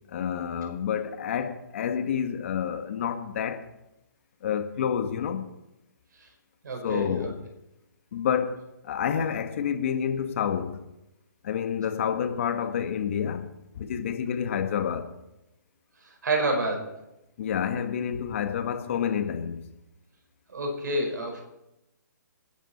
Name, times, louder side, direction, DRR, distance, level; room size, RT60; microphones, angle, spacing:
voice 1, 0.1-3.7 4.4-5.5 6.8-7.4 8.1-10.8 11.4-13.5 13.8-15.1 17.4-19.6, left 8 dB, 40° left, 1.5 m, -29 dB
voice 2, 6.6-7.3 16.0-16.9 20.5-21.4, right 2 dB, 70° right, 5.0 m, -29 dB
26.5 x 10.5 x 4.3 m
hypercardioid pair, 160°, 10 cm